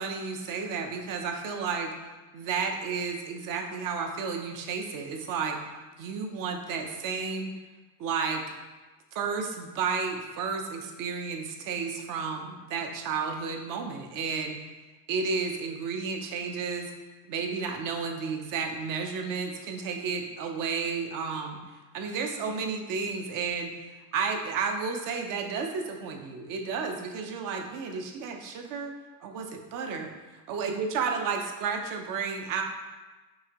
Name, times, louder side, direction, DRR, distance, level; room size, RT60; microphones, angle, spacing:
voice 1, 0.0-1.9 2.3-5.6 6.0-7.5 8.0-8.4 9.1-14.6 15.1-16.9 17.3-21.6 21.9-23.7 24.1-28.9 29.2-30.1 30.5-32.6, right 5 dB, 45° right, 3 dB, 0.6 m, -32 dB
5.5 x 2.8 x 2.9 m, 1.2 s
cardioid pair, 135°, 46 cm